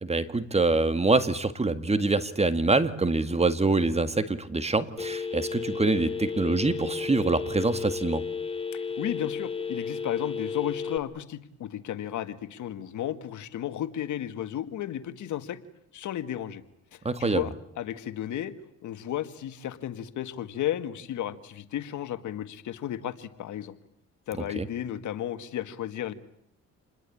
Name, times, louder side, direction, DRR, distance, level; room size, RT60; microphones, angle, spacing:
voice 1, 0.0-8.2 17.1-17.4 24.6-24.7, right 3 dB, 20° right, 12 dB, 1.8 m, -25 dB
Telephone, 5.0-11.0, left 5 dB, 20° left, 1.9 m, -33 dB
voice 2, 8.7-15.6 15.9-16.6 16.9-18.5 18.8-23.7 24.3-26.1, left 11 dB, 75° left, 11 dB, 1.8 m, -34 dB
28.0 x 21.0 x 8.5 m, 0.71 s
cardioid pair, 90°, 30 cm